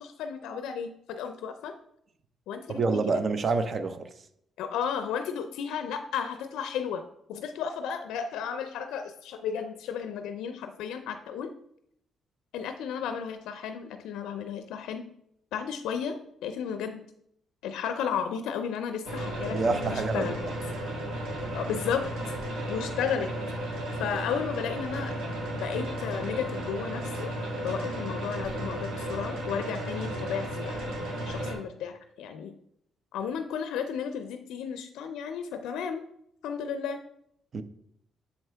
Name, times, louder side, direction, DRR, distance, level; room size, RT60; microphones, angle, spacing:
voice 1, 0.0-1.7 2.5-3.2 4.6-7.0 7.3-11.5 12.5-15.1 15.5-17.1 17.6-20.4 21.5-22.1 22.7-23.3 23.9-25.1 25.6-27.3 27.6-30.8 31.3-32.5 33.1-36.0 36.4-37.0, left 7 dB, 85° left, 0.4 m, -33 dB
voice 2, 2.7-4.1 19.5-20.4 37.5-37.6, right 4 dB, 45° right, 0.6 m, -27 dB
sound 1, 19.0-31.5, right 1 dB, 70° right, 2.0 m, -34 dB
6.9 x 4.4 x 3.3 m
cardioid pair, 90°, 0 cm